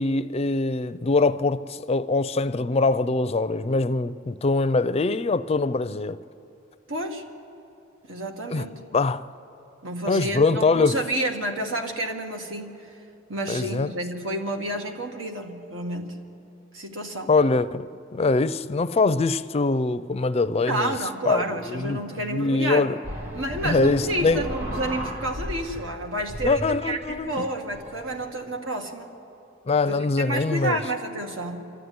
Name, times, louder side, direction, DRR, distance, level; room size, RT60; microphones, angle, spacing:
voice 1, 0.0-6.2 8.5-8.7 8.9-9.2 10.1-11.0 13.5-13.9 17.3-17.9 18.1-21.0 21.3-22.0 22.3-23.0 23.6-24.4 26.4-27.4 29.7-30.8, left 3 dB, 30° left, 0.4 m, -23 dB
voice 2, 6.9-7.2 8.1-8.8 9.8-12.9 13.3-16.2 16.7-17.3 20.7-22.9 23.3-29.1 29.9-31.6, right 1 dB, 90° right, 2.0 m, -30 dB
sound 1, 23.0-25.9 26.2-28.3, equal, 55° right, 3.6 m, -35 dB
27.0 x 13.0 x 9.6 m
head